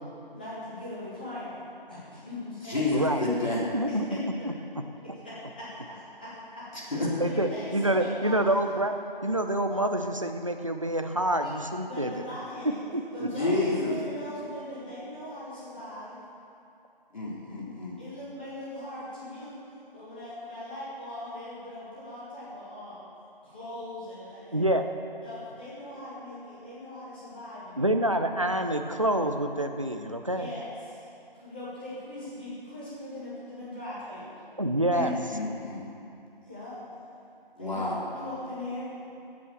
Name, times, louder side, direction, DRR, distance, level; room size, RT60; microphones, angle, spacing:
voice 1, 0.3-2.9 3.9-4.0 5.1-5.3 5.6-6.9 7.2-8.4 11.9-12.8 13.1-16.2 18.0-19.6 19.9-23.0 23.4-24.7 25.2-27.9 30.3-31.1 31.3-34.4 36.4-37.0 37.6-37.8 38.1-39.0, left 1 dB, 10° left, -11 dB, 1.9 m, -40 dB
voice 2, 2.7-3.6 6.9-7.1 13.2-13.9 17.1-18.0 34.9-35.8 37.6-38.0, left 2 dB, 50° left, -5 dB, 3.6 m, -29 dB
voice 3, 3.7-4.5 7.2-7.5 7.7-8.9 9.2-12.1 12.9-13.0 24.5-24.8 27.8-30.5 34.6-35.1, right 1 dB, 35° right, 6 dB, 0.6 m, -27 dB
12.5 x 8.5 x 7.4 m, 2.6 s
figure-of-eight pair, 170°, 29 cm